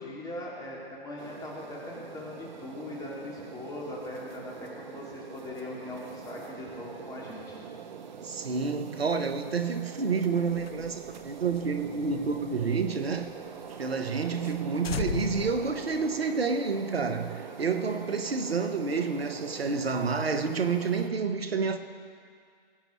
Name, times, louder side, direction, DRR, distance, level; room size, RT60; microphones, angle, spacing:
voice 1, 0.0-7.6, left 2 dB, 10° left, -4 dB, 2.3 m, -40 dB
sound 1, 1.2-21.1, right 7 dB, 50° right, 0.7 m, -44 dB
voice 2, 8.2-13.3 13.8-21.8, right 5 dB, 75° right, 8 dB, 1.0 m, -29 dB
sound 2, 10.5-13.3 13.7-13.8 14.1-14.2 14.4-14.6 14.8-16.5, left 7 dB, 75° left, 0.5 m, -38 dB
21.0 x 8.9 x 3.1 m, 2.1 s
figure-of-eight pair, 130°, 31 cm